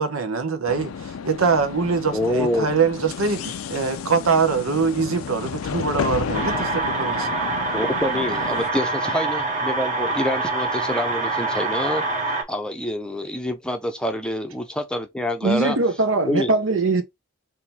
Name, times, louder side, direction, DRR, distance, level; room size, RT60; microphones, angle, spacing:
voice 1, 0.0-7.3, right 5 dB, 90° right, 0.9 m, -23 dB
sound 1, 0.7-8.7, left 6 dB, 85° left, 0.4 m, -32 dB
voice 2, 2.1-2.7 7.7-12.0 12.5-15.8 16.2-16.5, left 1 dB, 5° left, 0.6 m, -26 dB
sound 2, 6.3-12.4, right 3 dB, 35° right, 1.3 m, -25 dB
voice 3, 15.4-17.0, right 3 dB, 70° right, 1.0 m, -21 dB
3.8 x 2.7 x 4.2 m
head